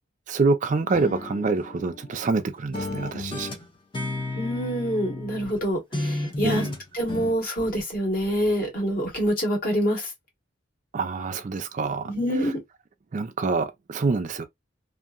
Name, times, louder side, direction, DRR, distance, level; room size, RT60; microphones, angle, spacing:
voice 1, 0.3-3.5 6.4-6.7 7.1-7.2 10.9-12.1 13.1-14.5, right 4 dB, 40° right, 0.4 m, -26 dB
sound 1, 0.9-2.4 2.7-5.6 5.9-7.3, left 2 dB, 25° left, 0.6 m, -33 dB
voice 2, 4.3-6.7 6.9-10.1 12.0-12.6, equal, 50° left, 1.5 m, -26 dB
2.7 x 2.5 x 2.4 m
head